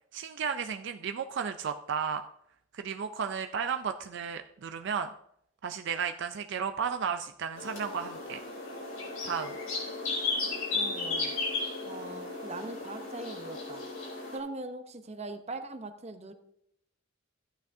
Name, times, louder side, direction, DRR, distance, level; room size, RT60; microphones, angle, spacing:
voice 1, 0.1-2.2 2.7-5.1 5.6-8.4 9.2-9.5, right 6 dB, 60° right, 7 dB, 0.4 m, -33 dB
sound 1, 7.6-14.4, left 3 dB, 85° left, 3.5 m, -35 dB
voice 2, 10.7-11.3 11.9-13.8 14.3-16.3, right 2 dB, 35° right, 8 dB, 0.8 m, -41 dB
14.0 x 9.0 x 2.7 m, 0.74 s
head